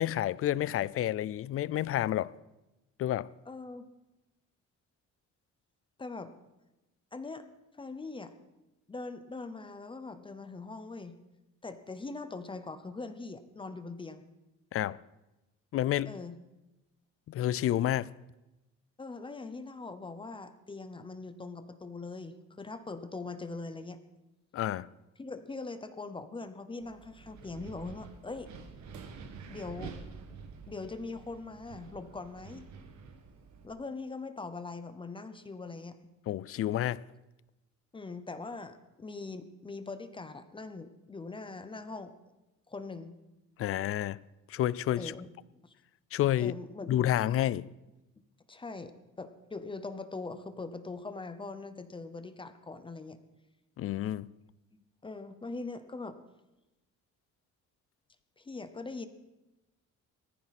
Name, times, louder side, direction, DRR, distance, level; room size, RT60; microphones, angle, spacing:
voice 1, 0.0-2.3 3.0-3.3 14.7-15.0 15.7-16.2 17.3-18.1 24.5-24.9 36.3-37.0 43.6-44.2 44.5-45.1 46.1-46.5 46.9-47.7 53.8-54.3, left 12 dB, 50° left, 0.4 m, -29 dB
voice 2, 3.5-3.9 6.0-6.3 7.1-7.4 7.8-8.3 8.9-11.2 11.6-14.2 16.1-16.4 19.0-24.0 25.2-28.5 29.5-30.0 30.7-32.7 33.6-36.0 37.9-42.1 42.7-43.1 45.0-45.3 45.6-45.7 46.4-47.1 48.5-53.2 55.0-56.2 58.4-59.1, left 3 dB, 15° left, 0.7 m, -42 dB
Wind, 26.8-33.7, right 5 dB, 65° right, 1.7 m, -48 dB
18.5 x 14.5 x 4.2 m
cardioid pair, 180°, 30 cm